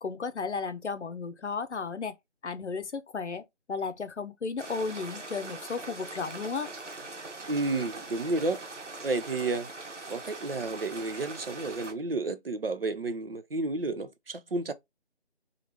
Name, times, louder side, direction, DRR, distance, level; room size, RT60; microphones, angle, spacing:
voice 1, 0.0-2.2 2.4-6.7, left 5 dB, 80° left, 0.6 m, -34 dB
sound 1, 4.6-11.9, right 3 dB, 85° right, 1.0 m, -42 dB
voice 2, 7.5-8.6 9.0-9.7 10.1-14.7, right 3 dB, 55° right, 0.5 m, -31 dB
3.1 x 2.4 x 2.8 m
figure-of-eight pair, 165°, 35 cm